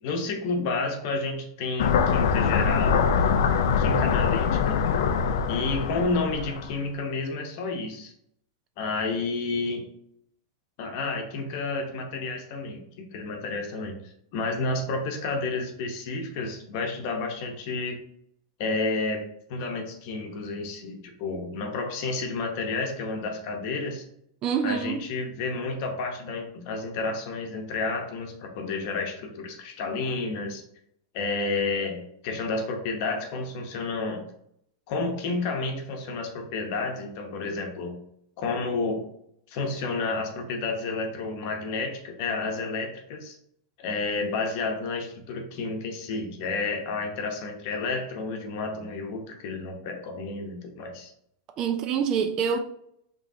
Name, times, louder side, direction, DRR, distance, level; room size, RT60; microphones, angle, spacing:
voice 1, 0.0-3.1 3.8-4.8 5.5-8.1 8.8-9.9 10.8-14.0 14.3-18.0 18.6-24.0 24.6-30.6 31.1-34.2 34.9-38.0 38.4-39.0 39.5-43.4 43.8-51.1, left 3 dB, 45° left, 0.9 m, -30 dB
sound 1, 1.8-6.8, left 6 dB, 75° left, 0.4 m, -23 dB
voice 2, 24.4-25.0 51.6-52.6, right 7 dB, 25° right, 0.4 m, -26 dB
5.2 x 3.1 x 2.7 m
supercardioid pair, 160°, 2 cm